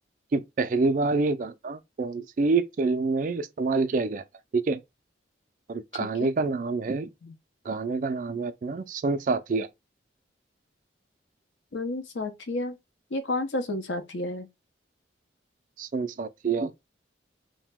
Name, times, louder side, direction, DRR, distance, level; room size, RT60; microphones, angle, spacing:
voice 1, 0.3-4.2 4.5-4.8 5.7-7.1 7.7-9.7 15.8-16.7, right 3 dB, 45° right, 0.3 m, -27 dB
voice 2, 5.9-6.3 7.2-7.3 11.7-12.8 13.1-14.5, left 2 dB, 80° left, 0.7 m, -31 dB
2.9 x 2.1 x 3.3 m
head